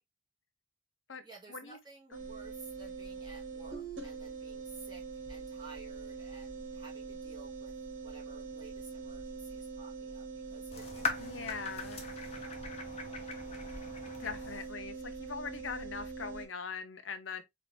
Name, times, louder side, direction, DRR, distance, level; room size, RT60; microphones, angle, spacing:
voice 1, 1.2-13.3, right 3 dB, 20° right, 1.9 m, -55 dB
sound 1, 2.1-16.5, right 4 dB, 75° right, 1.4 m, -43 dB
sound 2, 10.7-14.7, left 5 dB, 35° left, 0.9 m, -41 dB
voice 2, 11.2-12.1 14.2-17.4, left 5 dB, 80° left, 0.8 m, -41 dB
4.0 x 2.9 x 3.3 m
head